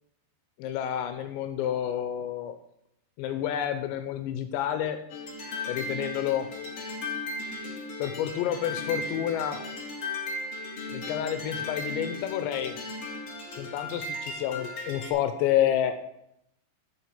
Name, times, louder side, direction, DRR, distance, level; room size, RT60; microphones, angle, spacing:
voice 1, 0.6-2.6 3.2-5.0 5.7-6.5 8.0-9.6 10.9-12.8 13.5-16.0, left 10 dB, 85° left, 9 dB, 2.9 m, -29 dB
sound 1, 5.1-15.1, left 2 dB, 55° left, 1.7 m, -36 dB
6.3 x 6.1 x 7.4 m, 0.78 s
omnidirectional pair, 5.2 m